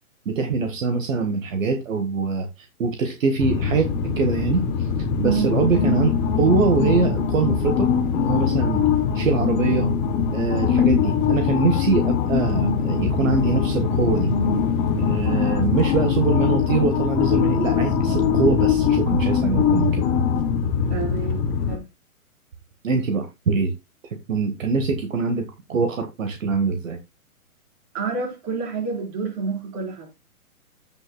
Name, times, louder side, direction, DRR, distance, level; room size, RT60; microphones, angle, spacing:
voice 1, 0.2-4.9 5.2-8.8 9.1-9.9 10.3-14.3 15.0-20.1 22.8-23.7 24.3-27.0, right 4 dB, 60° right, 1.6 m, -23 dB
sound 1, 3.4-21.8, left 7 dB, 10° left, 0.6 m, -22 dB
voice 2, 20.9-21.8 27.9-30.1, right 5 dB, 30° right, 4.4 m, -28 dB
15.5 x 5.9 x 2.3 m
figure-of-eight pair, 130°, 44 cm